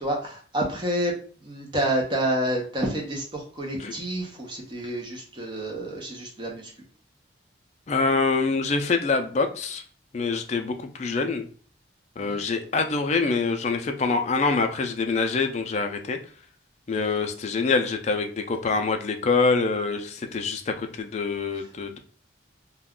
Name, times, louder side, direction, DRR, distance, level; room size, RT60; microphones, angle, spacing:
voice 1, 0.0-1.1 1.4-6.7 12.2-12.4, right 1 dB, 25° right, 0 dB, 0.7 m, -29 dB
voice 2, 7.9-9.8 10.1-11.5 12.2-16.2 16.9-22.0, left 4 dB, 35° left, 6 dB, 0.3 m, -25 dB
2.4 x 2.2 x 3.6 m, 0.43 s
head